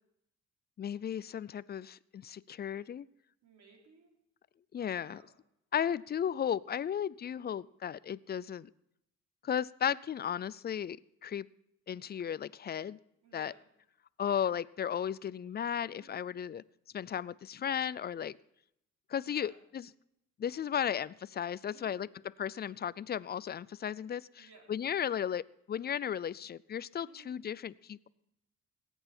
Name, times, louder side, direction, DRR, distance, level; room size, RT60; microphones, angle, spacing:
voice 1, 0.8-3.1 4.7-5.2 5.7-8.7 9.4-11.5 11.9-13.0 13.3-13.5 14.2-16.6 16.9-18.4 19.1-19.8 20.4-22.1 22.4-28.1, left 9 dB, 35° left, 20 dB, 0.4 m, -35 dB
voice 2, 3.4-4.1 4.8-5.3 13.2-13.7 15.9-16.3 19.2-19.6 21.7-22.0 24.4-24.7 27.0-27.3 28.0-28.1, right 4 dB, 65° right, 0 dB, 4.1 m, -59 dB
19.0 x 9.0 x 4.4 m, 0.79 s
cardioid pair, 90°, 30 cm